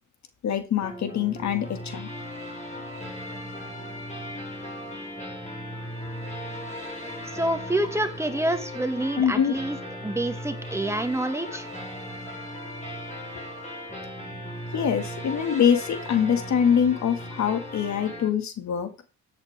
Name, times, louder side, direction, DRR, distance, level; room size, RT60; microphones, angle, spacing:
voice 1, 0.4-2.1 9.2-9.5 14.7-18.9, left 8 dB, 65° left, 8 dB, 1.9 m, -24 dB
sound 1, 0.8-18.3, equal, 25° left, 6.3 m, -37 dB
voice 2, 7.3-9.8 10.0-11.7, right 1 dB, 10° right, 8 dB, 1.7 m, -27 dB
14.0 x 8.1 x 3.5 m, 0.33 s
cardioid pair, 90°, 30 cm